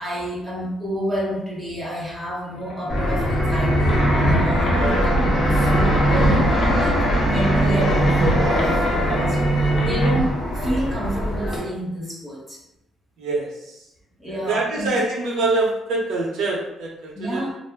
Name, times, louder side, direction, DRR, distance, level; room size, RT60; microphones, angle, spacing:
voice 1, 0.0-4.0 4.4-12.6 14.2-14.9 17.1-17.5, equal, ahead, -6 dB, 0.9 m, -29 dB
sound 1, 2.5-10.2, right 1 dB, 75° left, 0.6 m, -23 dB
Fixed-wing aircraft airplane, 2.9-11.6, equal, 25° left, 1.1 m, -22 dB
voice 2, 4.7-5.1 13.2-13.9 14.3-17.5, right 2 dB, 85° right, -3 dB, 0.8 m, -25 dB
2.5 x 2.0 x 3.4 m, 0.86 s
cardioid pair, 125°, 0 cm